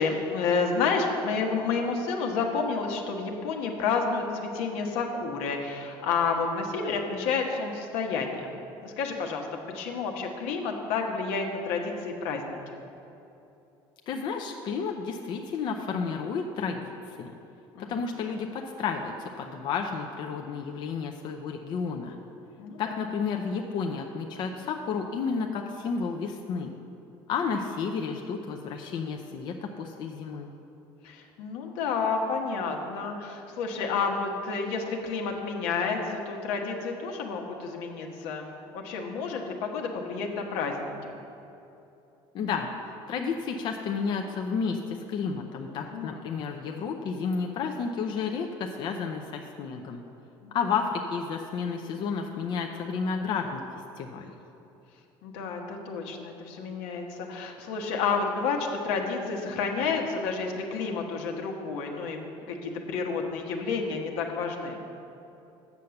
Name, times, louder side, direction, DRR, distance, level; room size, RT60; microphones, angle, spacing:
voice 1, 0.0-8.5 8.8-9.4 9.7-12.7 17.7-17.9 22.6-23.0 31.0-38.5 38.7-41.2 45.7-46.2 50.4-50.6 55.2-62.2 62.5-64.8, left 4 dB, 85° left, 2 dB, 1.2 m, -30 dB
voice 2, 14.1-16.8 17.1-17.3 17.8-22.2 22.8-26.7 27.3-30.5 42.3-42.7 43.1-50.0 50.5-53.6 54.0-54.3, left 5 dB, 55° left, 3 dB, 0.6 m, -31 dB
8.2 x 6.5 x 7.0 m, 2.9 s
cardioid pair, 130°, 10 cm